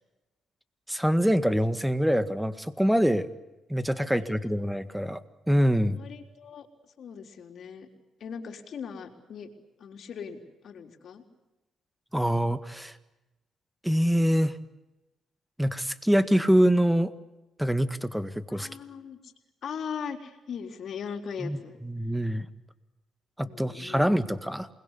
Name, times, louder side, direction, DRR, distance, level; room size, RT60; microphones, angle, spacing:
voice 1, 0.9-3.3 3.7-5.2 5.5-6.0 12.1-12.9 13.8-14.6 15.6-17.1 17.6-18.7 21.4-22.5 23.4-24.7, equal, 5° right, 13 dB, 1.8 m, -25 dB
voice 2, 4.0-4.4 6.0-6.7 7.0-7.9 8.2-9.5 9.8-11.2 18.5-19.3 19.6-21.8 23.4-24.0, left 7 dB, 60° left, 5 dB, 3.9 m, -39 dB
28.5 x 21.0 x 8.3 m, 1.0 s
cardioid pair, 90°, 0 cm